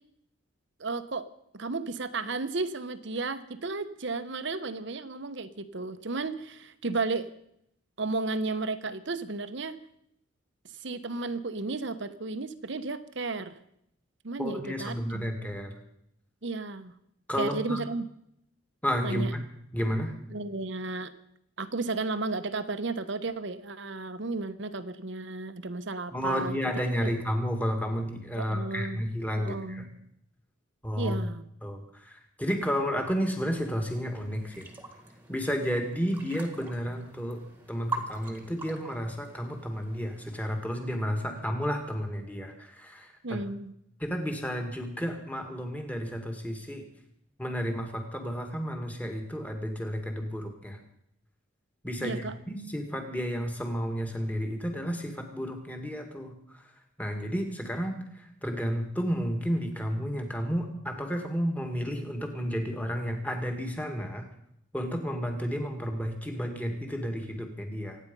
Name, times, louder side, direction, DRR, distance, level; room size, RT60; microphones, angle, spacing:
voice 1, 0.8-1.3 1.5-7.3 8.0-9.8 10.8-13.6 14.2-15.6 16.4-16.9 17.4-18.1 19.0-19.3 20.3-21.1 21.6-26.6 27.0-27.1 28.4-29.0 29.3-30.1 31.0-31.5 43.2-43.7 52.0-52.4, right 3 dB, 60° right, 12 dB, 1.0 m, -33 dB
voice 2, 14.4-15.7 17.3-17.8 18.8-19.4 19.7-20.1 26.1-29.9 30.8-31.3 31.6-34.7 35.3-37.4 37.7-43.4 44.0-46.8 47.4-50.8 51.8-56.3 57.0-64.3 64.7-68.0, equal, 5° left, 4 dB, 2.0 m, -32 dB
sound 1, 33.3-40.7, right 3 dB, 10° right, 1.7 m, -43 dB
25.0 x 9.6 x 5.4 m, 0.74 s
head